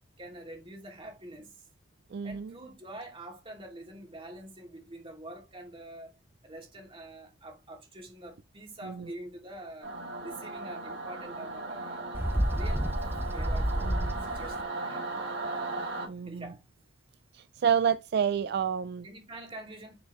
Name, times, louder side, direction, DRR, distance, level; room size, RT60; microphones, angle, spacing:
voice 1, 0.2-1.5 2.2-6.1 6.4-9.9 10.2-12.1 12.5-13.0 13.3-15.4 16.3-16.6 19.0-20.0, right 1 dB, 30° right, 2.6 m, -45 dB
voice 2, 2.1-2.5 8.8-9.1 13.8-14.2 16.1-16.5 17.3-19.1, right 7 dB, 60° right, 0.3 m, -29 dB
Singing / Musical instrument, 9.8-16.1, right 3 dB, 85° right, 4.8 m, -37 dB
Bird, 12.1-14.6, equal, 15° right, 0.8 m, -30 dB
9.2 x 4.7 x 3.1 m
head